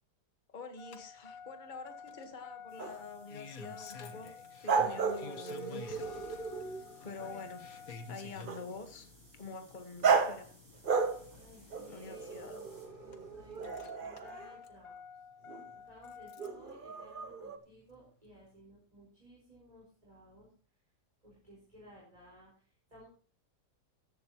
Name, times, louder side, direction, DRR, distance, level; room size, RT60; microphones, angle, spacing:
voice 1, 0.5-4.3 4.6-6.2 7.0-7.8 8.1-10.5 11.8-12.6, left 4 dB, 30° left, 7 dB, 1.4 m, -47 dB
Engine starting, 0.8-16.7 17.9-18.0, left 5 dB, 60° left, 1.6 m, -50 dB
sound 1, 2.7-12.9, right 2 dB, 70° right, 5.2 m, -64 dB
sound 2, 2.8-3.0 4.7-6.9 8.4-8.7 10.0-10.5 10.8-11.4 11.7-14.6 15.5-15.7 16.4-17.6, right 5 dB, 40° right, 0.9 m, -34 dB
voice 2, 11.3-12.6 13.0-15.0 15.7-20.5 21.2-23.1, equal, 20° right, -4 dB, 4.6 m, -57 dB
14.0 x 12.0 x 3.0 m, 0.41 s
omnidirectional pair, 1.8 m